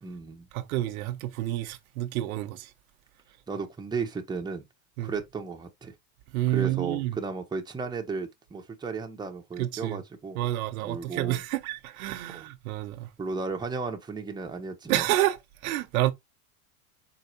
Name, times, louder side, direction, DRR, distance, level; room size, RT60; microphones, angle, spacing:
voice 1, 0.0-0.5 3.5-4.6 5.0-5.9 6.5-10.4 10.8-11.4 12.3-12.4 13.2-15.1, right 4 dB, 10° right, 0.9 m, -34 dB
voice 2, 0.5-2.7 5.0-5.1 6.3-7.2 9.6-10.0 10.3-13.1 14.9-16.1, right 15 dB, 75° right, 0.9 m, -29 dB
4.7 x 4.3 x 2.6 m
supercardioid pair, 115°, 44 cm